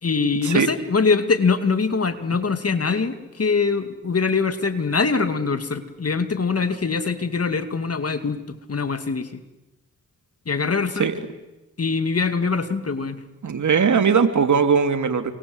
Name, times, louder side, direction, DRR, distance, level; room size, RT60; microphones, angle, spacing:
voice 1, 0.0-8.4 8.7-9.4 10.5-11.1 11.8-13.2, left 4 dB, 40° left, 10 dB, 2.5 m, -23 dB
voice 2, 13.4-15.3, right 6 dB, 55° right, 8 dB, 2.9 m, -19 dB
29.0 x 24.0 x 8.1 m, 1.0 s
supercardioid pair, 50°, 35 cm